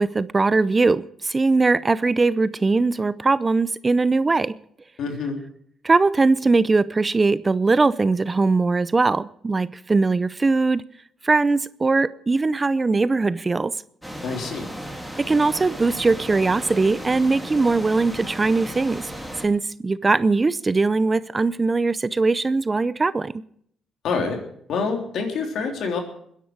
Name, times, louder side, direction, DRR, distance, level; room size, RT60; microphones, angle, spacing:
voice 1, 0.0-4.6 5.8-10.8 11.2-13.7 15.2-19.1 19.4-23.3, right 3 dB, 25° right, 17 dB, 0.5 m, -20 dB
voice 2, 5.0-5.4 14.2-14.7 24.0-24.4 24.7-26.0, left 4 dB, 70° left, 2 dB, 3.5 m, -26 dB
sound 1, 14.0-19.5, equal, ahead, 2.9 m, -35 dB
22.5 x 10.5 x 4.7 m, 0.67 s
cardioid pair, 90°, 0 cm